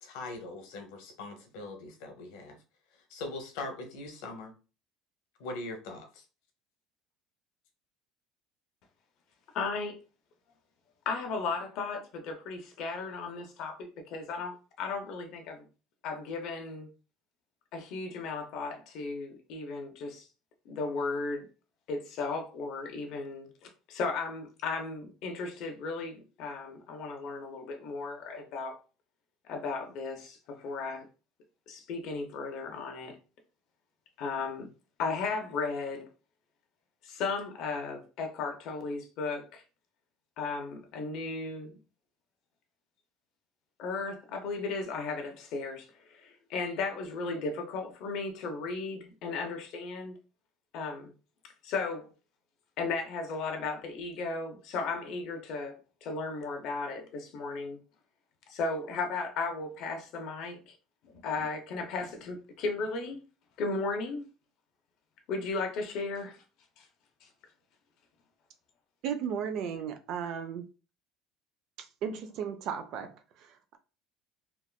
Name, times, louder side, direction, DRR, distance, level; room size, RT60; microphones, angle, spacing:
voice 1, 0.0-2.6 3.1-4.5 5.4-6.2, left 2 dB, 80° left, 0.8 m, -41 dB
voice 2, 9.5-10.0 11.1-15.7 16.0-16.9 17.7-20.3 20.6-21.5 21.9-28.8 29.4-31.1 31.7-33.2 34.2-34.7 35.0-36.1 37.0-39.6 40.4-41.8 43.8-50.1 50.7-51.1 51.6-52.1 52.8-57.8 58.5-60.7 61.0-63.2 63.6-64.3 65.3-66.4 66.8-66.9, left 4 dB, 50° left, 0.7 m, -35 dB
voice 3, 69.0-70.6 71.8-73.8, right 7 dB, 45° right, 0.4 m, -35 dB
3.4 x 2.4 x 2.2 m
cardioid pair, 175°, 0 cm